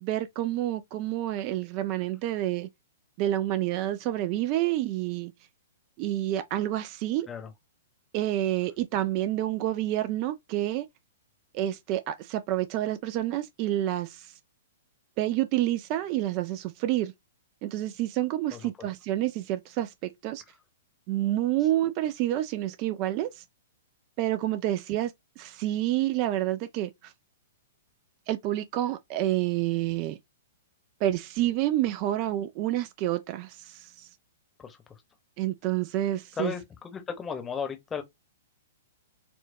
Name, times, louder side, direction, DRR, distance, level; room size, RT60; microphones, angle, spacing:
voice 1, 0.0-2.7 3.2-5.3 6.0-7.3 8.1-10.9 11.5-14.3 15.2-17.1 17.6-20.4 21.1-23.4 24.2-27.1 28.3-30.2 31.0-34.1 35.4-36.5, right 14 dB, 35° right, 0.3 m, -28 dB
voice 2, 36.4-38.0, left 6 dB, 15° left, 0.8 m, -35 dB
4.2 x 2.2 x 2.6 m
figure-of-eight pair, 110°, 0 cm